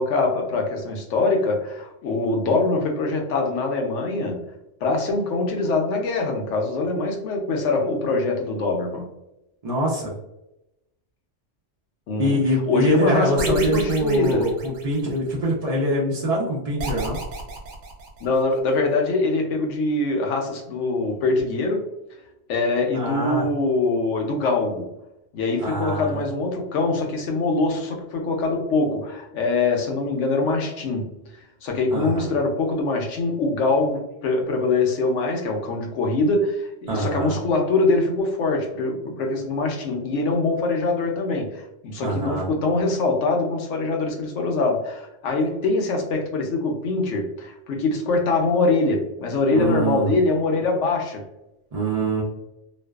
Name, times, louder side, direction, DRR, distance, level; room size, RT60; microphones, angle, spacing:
voice 1, 0.0-4.4 4.8-9.1 12.1-12.4 12.7-14.5 18.2-21.9 22.5-24.9 25.3-31.1 31.6-51.2, left 3 dB, 75° left, 2 dB, 0.9 m, -23 dB
voice 2, 9.6-10.1 12.2-17.2 22.9-23.5 25.6-26.2 31.9-32.3 36.9-37.4 42.0-42.5 49.5-50.1 51.7-52.2, right 1 dB, 55° right, -5 dB, 0.4 m, -24 dB
sound 1, 13.4-15.3 16.8-18.6, right 2 dB, 70° right, 0.9 m, -33 dB
2.4 x 2.2 x 2.2 m, 0.88 s
omnidirectional pair, 1.3 m